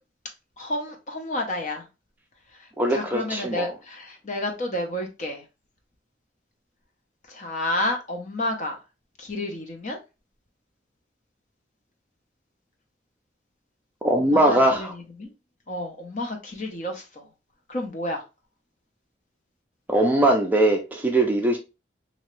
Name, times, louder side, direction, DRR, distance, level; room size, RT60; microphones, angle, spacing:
voice 1, 0.6-1.9 2.9-5.4 7.3-8.8 9.2-10.0 14.1-15.3 15.7-17.2 17.7-18.2, left 1 dB, 40° left, 0.7 m, -30 dB
voice 2, 2.8-3.7 14.0-14.9 19.9-21.6, right 1 dB, 10° right, 0.4 m, -21 dB
2.9 x 2.7 x 3.1 m
head